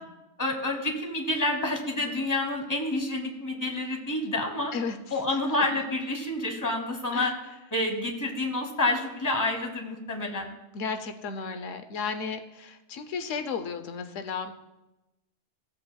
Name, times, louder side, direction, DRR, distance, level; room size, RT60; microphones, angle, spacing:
voice 1, 0.4-4.7 5.1-7.3 7.7-10.5, left 2 dB, 15° left, 3 dB, 1.2 m, -28 dB
voice 2, 4.7-5.2 7.1-7.3 10.7-14.5, left 5 dB, 85° left, 8 dB, 1.0 m, -34 dB
15.5 x 7.7 x 2.3 m, 0.99 s
omnidirectional pair, 1.3 m